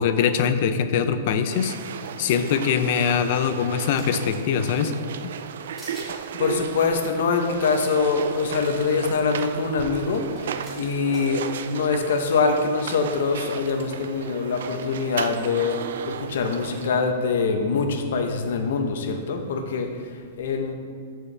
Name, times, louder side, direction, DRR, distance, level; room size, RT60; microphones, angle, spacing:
voice 1, 0.0-1.8 2.2-4.9, left 7 dB, 40° left, 10 dB, 0.4 m, -22 dB
sound 1, 1.5-16.9, right 7 dB, 70° right, 0.3 m, -35 dB
sound 2, 3.9-4.3 4.8-5.5 5.8-6.1 7.6-7.7 7.9-8.0 9.0-9.2 10.1-11.3, right 1 dB, 5° right, 1.6 m, -45 dB
voice 2, 6.1-20.7, left 4 dB, 65° left, 5 dB, 0.9 m, -24 dB
13.5 x 4.6 x 3.3 m, 2.1 s
supercardioid pair, 175°, 0 cm